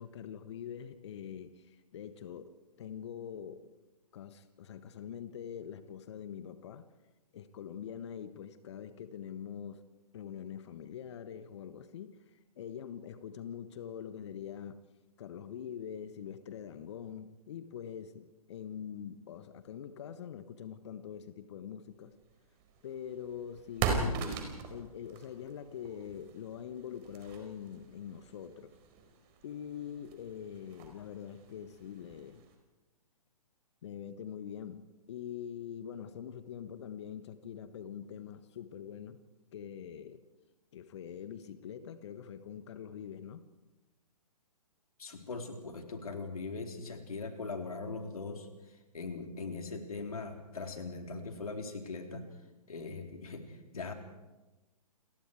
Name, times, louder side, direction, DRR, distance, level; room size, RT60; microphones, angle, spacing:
voice 1, 0.0-3.7 4.1-6.9 7.3-9.8 10.1-14.8 15.2-22.1 22.8-28.8 29.4-32.5 33.8-39.2 39.5-40.2 40.7-43.4, left 8 dB, 45° left, 11 dB, 1.4 m, -44 dB
sound 1, 22.2-32.5, right 5 dB, 30° right, 4.7 m, -41 dB
voice 2, 45.0-52.2 52.7-53.9, left 3 dB, 65° left, 4 dB, 4.0 m, -41 dB
30.0 x 22.0 x 4.8 m, 1.1 s
figure-of-eight pair, 125°, 20 cm